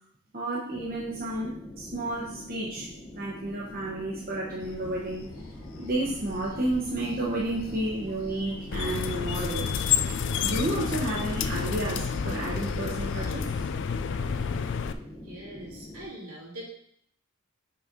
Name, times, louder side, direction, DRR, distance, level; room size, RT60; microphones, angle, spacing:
voice 1, 0.3-2.9 3.2-5.3 5.8-9.7 10.4-13.5, right 1 dB, 40° right, -5 dB, 1.0 m, -31 dB
sound 1, 0.7-16.1, left 1 dB, 15° left, 0.8 m, -45 dB
sound 2, 4.6-13.3, left 2 dB, 75° left, 0.9 m, -45 dB
sound 3, 8.7-14.9, left 7 dB, 55° left, 0.4 m, -29 dB
voice 2, 15.2-16.6, right 1 dB, 80° right, -5 dB, 2.7 m, -42 dB
5.7 x 4.1 x 5.2 m, 0.65 s
head